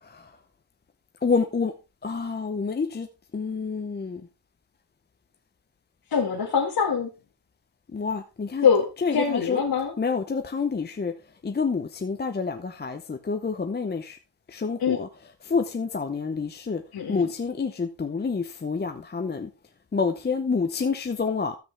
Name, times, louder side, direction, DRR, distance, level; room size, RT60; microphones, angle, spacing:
voice 1, 0.0-0.4 1.2-1.7 2.0-3.1 3.3-4.3 7.9-8.7 9.0-9.6 10.0-11.1 11.4-14.2 14.5-16.8 17.1-19.5 19.9-21.6, left 5 dB, 25° left, 0.7 m, -28 dB
voice 2, 6.1-7.1 8.6-9.9 14.8-15.0 16.9-17.3, left 6 dB, 55° left, 1.8 m, -23 dB
13.0 x 7.8 x 3.3 m
wide cardioid pair, 145°, 42 cm